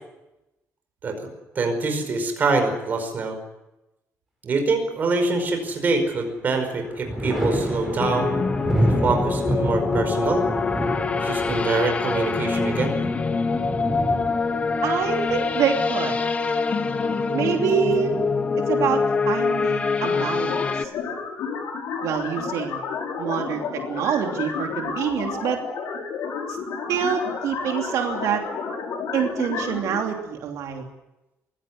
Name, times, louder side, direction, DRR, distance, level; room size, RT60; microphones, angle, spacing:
voice 1, 1.6-3.4 4.4-8.4 8.8-10.4 11.1-13.0, right 3 dB, 35° right, 5 dB, 5.1 m, -25 dB
Thunder, 5.4-6.2 6.5-16.1 17.6-18.4, right 1 dB, ahead, 8.0 m, -29 dB
sound 1, 8.0-20.8, left 4 dB, 25° left, 1.1 m, -24 dB
voice 2, 14.8-16.2 17.3-18.2 18.7-20.9 22.0-22.8 23.2-25.6 26.5-26.6 26.9-28.4 29.1-30.8, right 8 dB, 90° right, 2 dB, 2.9 m, -26 dB
sound 2, 20.0-30.0, left 5 dB, 75° left, 6.4 m, -31 dB
23.0 x 16.5 x 9.5 m, 0.96 s
cardioid pair, 180°, 5 cm